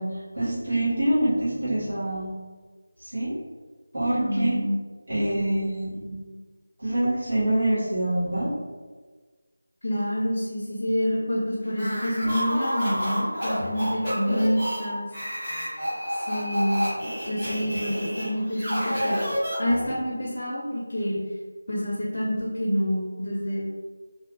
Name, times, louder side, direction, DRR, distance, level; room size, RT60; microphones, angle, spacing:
voice 1, 0.0-2.3 3.0-3.3 3.9-4.6 5.1-6.2 6.8-8.5 14.3-14.4, right 1 dB, 65° right, -9 dB, 1.4 m, -26 dB
voice 2, 4.1-4.8 5.3-5.7 9.8-15.1 16.1-16.8 17.2-19.2 19.6-21.2 21.7-23.6, equal, 55° left, -4 dB, 0.5 m, -27 dB
sound 1, 11.7-20.0, equal, 5° right, 0.9 m, -29 dB
2.5 x 2.3 x 2.4 m, 1.4 s
figure-of-eight pair, 180°, 0 cm